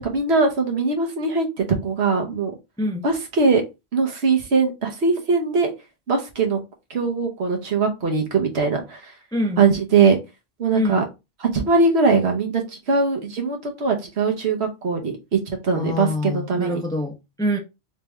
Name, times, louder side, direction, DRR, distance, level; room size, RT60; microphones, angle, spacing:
voice 1, 0.0-2.5 3.0-3.6 3.9-5.7 6.1-6.6 6.9-9.1 9.6-10.2 10.6-11.0 11.4-16.8, right 4 dB, 80° right, 1.3 m, -21 dB
voice 2, 15.7-17.6, left 1 dB, 5° left, 0.4 m, -25 dB
3.4 x 3.1 x 3.3 m
omnidirectional pair, 1.1 m